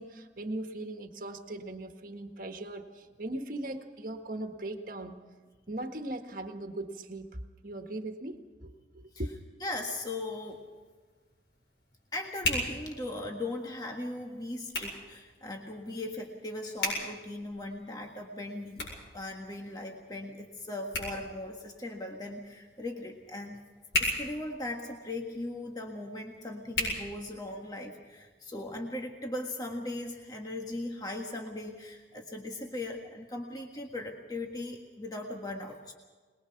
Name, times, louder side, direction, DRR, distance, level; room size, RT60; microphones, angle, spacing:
voice 1, 0.0-5.3 5.7-9.3, right 1 dB, 50° right, 5 dB, 1.7 m, -39 dB
voice 2, 9.1-10.6 12.1-18.9 19.1-23.6 24.0-35.9, left 2 dB, 20° left, 1 dB, 1.6 m, -38 dB
Hands, 10.2-27.8, left 1 dB, 75° left, 7.9 m, -39 dB
22.5 x 21.0 x 5.9 m, 1.4 s
head